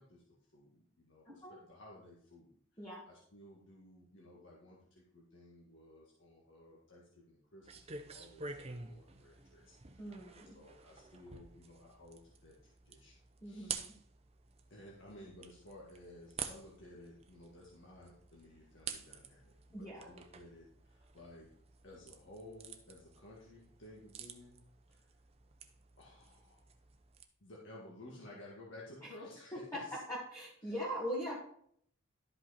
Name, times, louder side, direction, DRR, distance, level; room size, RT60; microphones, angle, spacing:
voice 1, 0.0-13.1 13.4-13.8 14.7-21.5 21.8-24.6 24.9-25.0 26.0-26.6 27.4-30.0 30.6-30.8, left 1 dB, 60° left, -4 dB, 1.7 m, -56 dB
voice 2, 1.3-1.6 2.8-3.0 10.0-10.6 13.4-13.9 19.7-20.1 29.0-29.1 29.7-31.4, equal, 15° left, -6 dB, 1.8 m, -41 dB
sound 1, 7.6-27.2, right 5 dB, 30° right, 0.7 m, -50 dB
12.0 x 5.4 x 4.2 m, 0.64 s
head